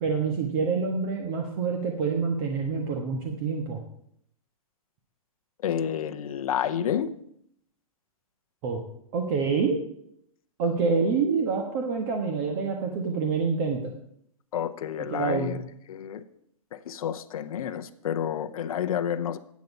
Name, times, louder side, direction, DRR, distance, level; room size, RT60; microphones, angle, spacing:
voice 1, 0.0-3.8 8.6-8.8 9.1-9.8 10.6-13.9 15.1-15.6, right 5 dB, 40° right, 3 dB, 1.4 m, -27 dB
voice 2, 5.6-7.1 14.5-15.6 15.9-16.2 16.7-19.4, left 9 dB, 70° left, 10 dB, 0.8 m, -29 dB
9.3 x 8.4 x 5.3 m, 0.70 s
hypercardioid pair, 140°, 19 cm